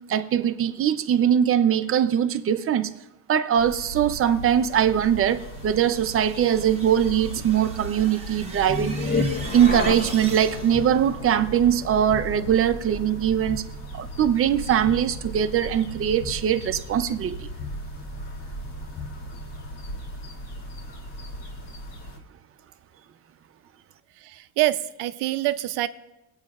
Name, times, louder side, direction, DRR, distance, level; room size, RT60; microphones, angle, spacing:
voice 1, 0.1-2.9 3.3-9.2 9.5-13.6 13.9-17.5, right 9 dB, 35° right, 0.6 m, -22 dB
sound 1, 3.6-22.2, right 1 dB, 75° left, 2.3 m, -38 dB
sound 2, 5.0-11.0, right 4 dB, 15° right, 1.1 m, -42 dB
sound 3, 8.7-19.8, left 2 dB, 25° left, 0.7 m, -34 dB
voice 2, 24.2-25.9, right 16 dB, 75° right, 0.6 m, -25 dB
20.5 x 8.7 x 2.4 m
cardioid pair, 145°, 40 cm